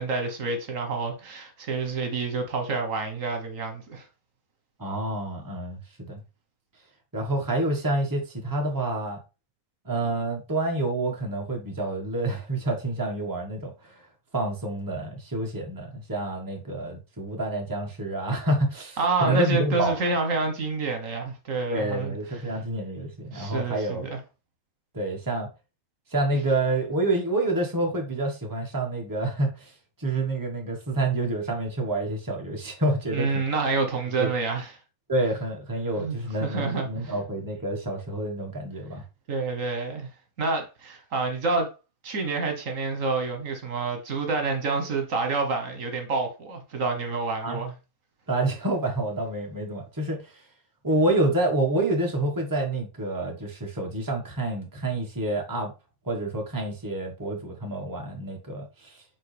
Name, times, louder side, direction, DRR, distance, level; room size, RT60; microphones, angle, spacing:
voice 1, 0.0-4.0 19.0-22.4 23.3-24.1 33.1-34.7 36.0-37.1 39.3-40.1 40.4-41.7 42.0-47.7, right 3 dB, 65° right, 1.5 m, -28 dB
voice 2, 4.8-6.2 7.1-9.2 9.8-14.0 14.3-20.0 21.7-24.1 24.9-25.5 26.1-29.7 30.0-33.4 34.2-34.3 35.1-39.0 47.4-47.6 48.3-50.3 50.8-55.7 56.0-59.0, right 2 dB, 15° right, 1.4 m, -28 dB
7.4 x 3.9 x 3.4 m
omnidirectional pair, 1.5 m